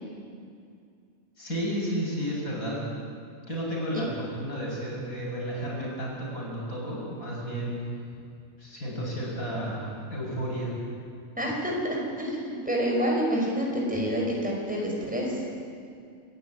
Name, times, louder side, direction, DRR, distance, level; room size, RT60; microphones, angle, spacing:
voice 1, 1.4-2.8 3.5-7.8 8.6-10.7, equal, 85° left, -3 dB, 7.6 m, -32 dB
voice 2, 11.4-15.4, equal, 5° right, -2 dB, 5.6 m, -28 dB
27.5 x 14.5 x 9.5 m, 2.3 s
omnidirectional pair, 1.5 m